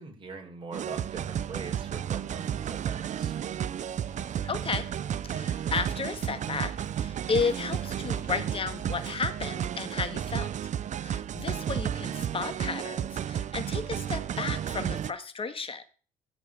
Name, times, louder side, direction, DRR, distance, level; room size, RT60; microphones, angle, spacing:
voice 1, 0.0-3.4, right 4 dB, 30° right, 2 dB, 4.7 m, -42 dB
sound 1, 0.7-15.1, right 9 dB, 45° right, 0.6 m, -32 dB
Bird, 3.6-9.2, left 8 dB, 85° left, 3.3 m, -56 dB
voice 2, 4.4-4.9 5.2-10.5 11.0-15.8, left 5 dB, 35° left, 10 dB, 1.7 m, -33 dB
14.0 x 4.8 x 9.0 m, 0.40 s
cardioid pair, 110°, 17 cm